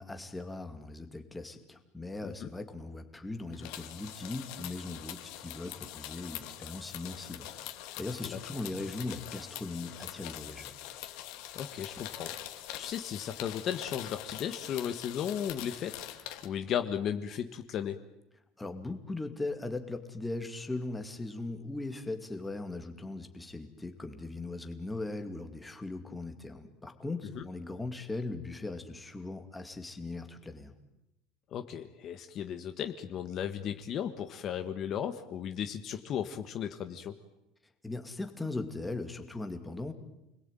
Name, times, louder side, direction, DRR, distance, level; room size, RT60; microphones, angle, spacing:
voice 1, 0.0-7.7 8.0-10.7 18.6-30.7 37.8-39.9, left 2 dB, 10° left, 6 dB, 2.4 m, -39 dB
sound 1, 3.5-16.5, left 13 dB, 65° left, 2.6 m, -44 dB
voice 2, 11.5-12.3 12.8-18.0 27.3-27.4 31.5-37.1, left 9 dB, 40° left, 8 dB, 1.6 m, -35 dB
29.5 x 21.5 x 9.2 m, 0.92 s
cardioid pair, 155°, 0 cm